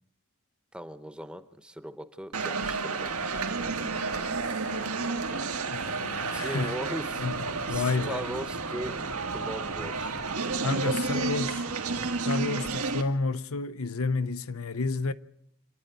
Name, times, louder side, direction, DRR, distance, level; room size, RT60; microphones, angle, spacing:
voice 1, 0.7-3.1 6.3-7.2 7.7-9.0 9.3-10.2 10.6-11.2, right 1 dB, 5° right, 0.9 m, -38 dB
sound 1, 2.3-13.0, right 4 dB, 90° right, 2.0 m, -31 dB
voice 2, 5.7-6.8 7.2-8.3 10.6-11.6 12.2-15.1, left 3 dB, 80° left, 0.8 m, -30 dB
26.5 x 11.0 x 9.4 m
head